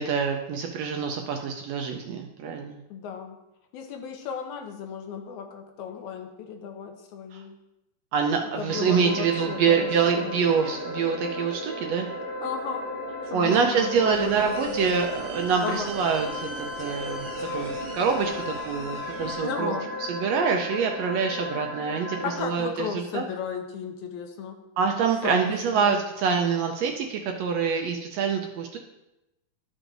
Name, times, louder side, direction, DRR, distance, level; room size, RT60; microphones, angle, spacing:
voice 1, 0.0-2.8 7.3-7.4 8.1-12.1 13.3-17.3 17.5-19.8 20.1-23.2 24.8-28.8, right 6 dB, 75° right, 3 dB, 1.6 m, -26 dB
voice 2, 2.9-3.4 3.7-7.5 8.4-10.3 12.4-12.9 13.2-14.8 15.6-15.9 19.4-19.9 22.2-24.6 25.2-26.0, left 6 dB, 80° left, 4 dB, 2.2 m, -35 dB
sound 1, 8.7-22.4, left 1 dB, 40° right, 1.7 m, -35 dB
sound 2, 14.1-19.3, right 1 dB, 10° right, 1.9 m, -40 dB
12.5 x 6.2 x 2.6 m, 0.93 s
omnidirectional pair, 3.5 m